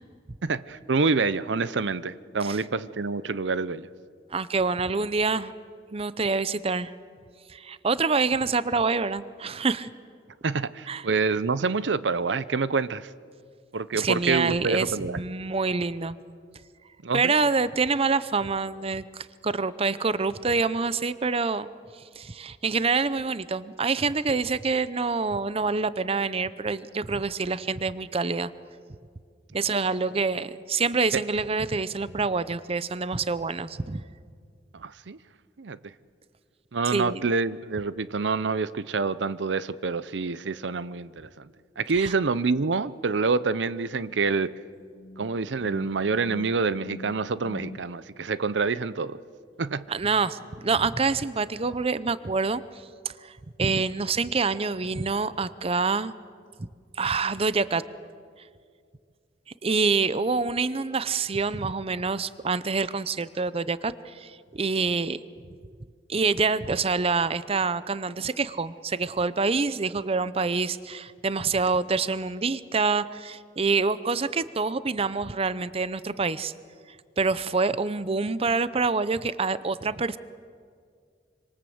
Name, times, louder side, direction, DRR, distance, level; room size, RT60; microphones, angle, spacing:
voice 1, 0.4-3.9 10.4-13.1 13.7-15.2 17.0-17.3 34.8-35.2 35.6-35.8 36.7-41.5 41.8-44.5 45.2-49.2 49.6-49.8, right 4 dB, 80° right, 16 dB, 0.7 m, -27 dB
voice 2, 4.3-5.5 5.9-6.9 7.5-9.9 10.9-11.1 13.9-16.2 17.1-21.7 22.2-28.5 29.5-34.0 36.9-37.2 42.0-42.1 49.9-52.6 53.1-56.1 57.0-57.8 59.6-65.2 66.1-76.5 77.2-80.2, right 4 dB, 35° right, 16 dB, 0.6 m, -26 dB
sound 1, 44.4-47.8 50.0-51.4, left 1 dB, 35° left, 0.7 m, -45 dB
26.5 x 25.5 x 7.9 m, 2.1 s
head